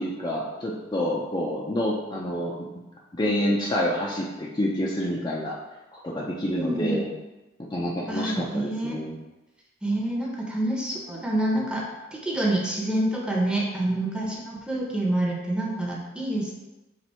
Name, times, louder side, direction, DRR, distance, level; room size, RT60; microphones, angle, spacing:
voice 1, 0.0-2.8 3.1-5.5 5.9-7.1 7.6-9.2, left 1 dB, 25° left, -4 dB, 0.5 m, -28 dB
voice 2, 6.5-7.0 8.1-9.0 9.8-11.9 12.1-16.5, right 1 dB, 5° right, -3 dB, 0.7 m, -27 dB
4.2 x 2.6 x 4.3 m, 1.1 s
head